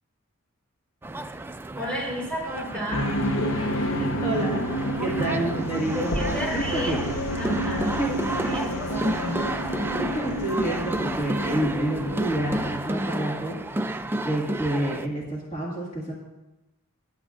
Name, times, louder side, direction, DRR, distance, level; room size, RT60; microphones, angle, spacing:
sound 1, 1.0-15.1, right 1 dB, 10° right, 0.3 m, -32 dB
voice 1, 1.7-3.0 5.8-6.9 7.3-8.0 8.4-9.4, equal, 5° left, -4 dB, 2.9 m, -32 dB
sound 2, 2.9-12.8, equal, 65° left, 1.0 m, -30 dB
voice 2, 3.7-7.0 8.0-8.1 9.6-13.6 14.2-16.2, right 1 dB, 35° left, -5 dB, 1.8 m, -29 dB
19.0 x 8.0 x 2.5 m, 1.0 s
head